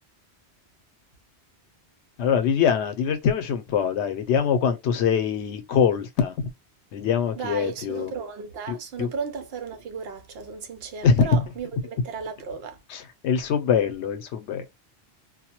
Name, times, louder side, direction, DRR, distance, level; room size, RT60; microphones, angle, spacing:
voice 1, 2.2-6.5 6.9-8.1 8.7-9.1 11.0-11.5 12.9-14.7, left 7 dB, 90° left, 0.9 m, -23 dB
voice 2, 7.4-12.8, right 5 dB, 70° right, 0.8 m, -35 dB
2.2 x 2.1 x 2.8 m
omnidirectional pair, 1.1 m